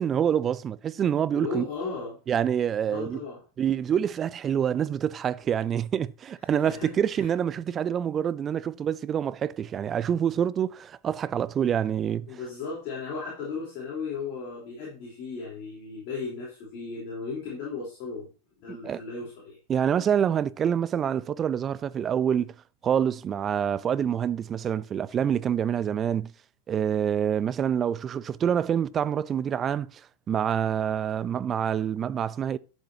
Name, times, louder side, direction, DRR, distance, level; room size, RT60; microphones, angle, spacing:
voice 1, 0.0-1.7 2.3-3.2 3.6-12.3 18.7-19.0 19.7-22.5 22.8-26.3 26.7-30.0 30.3-32.6, right 8 dB, 25° right, 0.4 m, -26 dB
voice 2, 1.3-2.2 2.9-3.4 6.5-7.3 12.2-18.3 18.6-19.6, left 4 dB, 40° left, 3.8 m, -36 dB
11.5 x 7.1 x 2.9 m
figure-of-eight pair, 90°, 0 cm